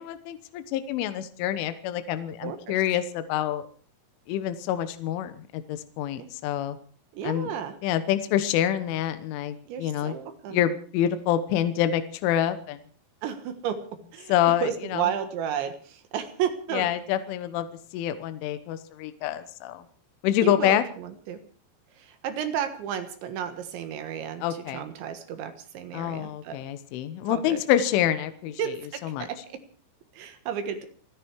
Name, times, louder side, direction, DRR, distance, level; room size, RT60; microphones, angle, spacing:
voice 1, 0.0-3.6 4.3-6.8 7.2-7.5 7.8-10.1 10.5-12.8 14.3-15.1 16.7-17.7 17.9-19.8 20.2-20.8 24.4-24.8 25.9-28.6 29.1-29.3, left 11 dB, 75° left, 10 dB, 3.4 m, -27 dB
voice 2, 2.4-2.8 6.2-6.3 7.1-7.7 9.7-10.6 13.2-13.8 14.1-14.3 14.6-16.9 20.4-21.4 22.0-26.6 27.3-27.6 28.6-29.6 30.1-30.9, right 9 dB, 70° right, 8 dB, 3.5 m, -32 dB
29.0 x 10.0 x 4.7 m, 0.43 s
omnidirectional pair, 5.9 m